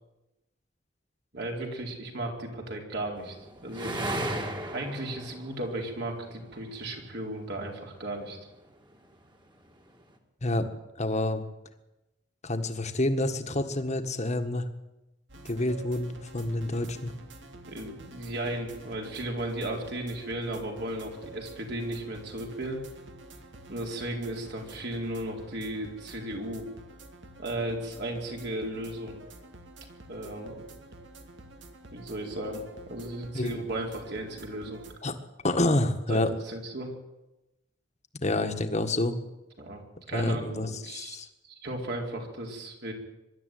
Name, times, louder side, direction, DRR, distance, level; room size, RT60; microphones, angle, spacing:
voice 1, 1.3-3.4 3.6-4.0 4.7-8.4 17.7-22.8 23.7-26.7 27.4-29.2 30.1-30.7 31.9-34.8 36.1-36.9 39.6-41.2 41.4-42.9, right 1 dB, 65° right, 1 dB, 4.4 m, -35 dB
sound 1, 3.2-6.7 7.6-8.4, right 1 dB, 25° right, 2.3 m, -35 dB
voice 2, 11.0-11.4 12.4-14.6 15.5-17.1 33.3-33.6 35.0-35.2 35.4-36.3 38.2-39.2 40.1-41.3, left 1 dB, 40° left, 8 dB, 1.7 m, -28 dB
sound 2, 15.3-35.0, right 2 dB, 80° right, 2.4 m, -49 dB
24.0 x 12.0 x 9.3 m, 0.97 s
head